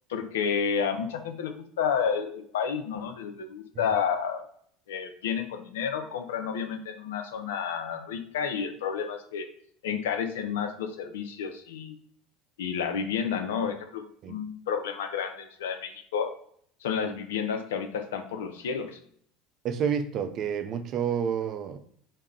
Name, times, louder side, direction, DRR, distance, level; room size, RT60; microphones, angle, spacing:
voice 1, 0.1-4.4 4.9-9.5 9.8-12.0 12.6-16.3 16.8-19.0, left 7 dB, 80° left, 7 dB, 0.4 m, -31 dB
voice 2, 19.6-21.8, right 7 dB, 50° right, 8 dB, 0.3 m, -29 dB
2.2 x 2.0 x 3.6 m, 0.62 s
hypercardioid pair, 80°, 0 cm